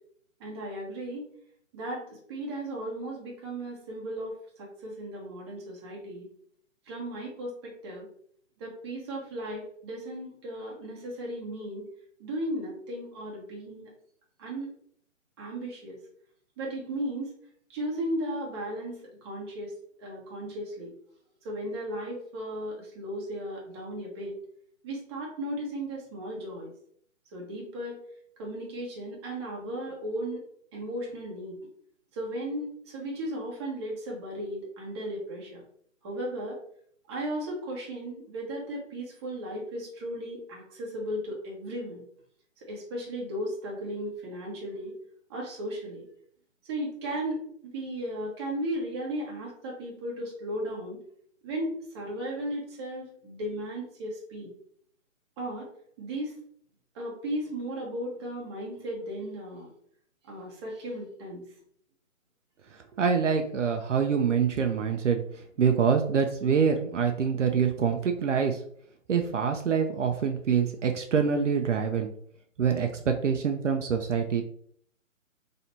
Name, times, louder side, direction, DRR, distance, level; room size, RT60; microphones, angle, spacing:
voice 1, 0.4-1.3 1.7-6.3 6.9-8.1 8.6-11.8 12.2-13.9 14.4-14.7 15.4-16.0 16.6-17.3 17.7-19.7 20.0-20.9 21.4-24.4 24.8-26.7 27.3-28.0 28.4-30.4 30.7-31.6 32.1-35.6 36.0-36.6 37.1-42.0 42.7-44.9 45.3-46.0 46.7-51.0 51.4-54.5 55.4-55.7 56.0-56.3 56.9-59.7 60.3-61.5, right 1 dB, 20° right, -2 dB, 0.9 m, -35 dB
voice 2, 63.0-65.2 65.6-68.6 69.1-72.1 72.6-74.4, right 6 dB, 65° right, 5 dB, 0.6 m, -25 dB
3.2 x 2.8 x 4.1 m, 0.63 s
figure-of-eight pair, 145°, 40 cm